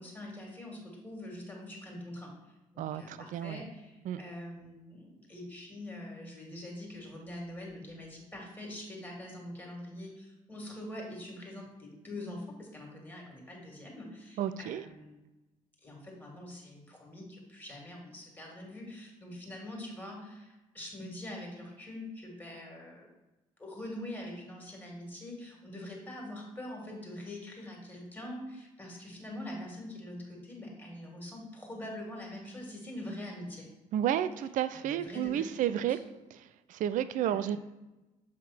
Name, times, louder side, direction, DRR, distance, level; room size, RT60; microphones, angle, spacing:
voice 1, 0.0-2.3 2.7-15.2 15.8-23.1 23.6-33.7 34.7-35.5 35.7-36.0 37.2-37.6, left 1 dB, 10° left, -1 dB, 2.3 m, -44 dB
voice 2, 2.8-3.6 4.1-4.2 14.4-14.8 33.9-36.0 36.3-36.4 36.7-37.6, right 10 dB, 45° right, 13 dB, 0.4 m, -31 dB
7.3 x 3.6 x 4.3 m, 1.0 s
figure-of-eight pair, 50°, 18 cm